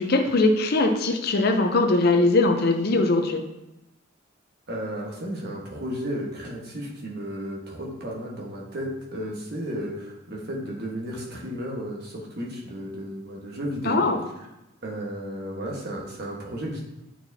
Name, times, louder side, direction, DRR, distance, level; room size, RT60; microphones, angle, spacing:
voice 1, 0.0-3.4 13.8-14.2, left 2 dB, 50° left, 5 dB, 0.6 m, -21 dB
voice 2, 4.7-14.0 14.8-16.8, equal, 55° right, -2 dB, 1.3 m, -33 dB
8.9 x 4.4 x 2.7 m, 0.92 s
head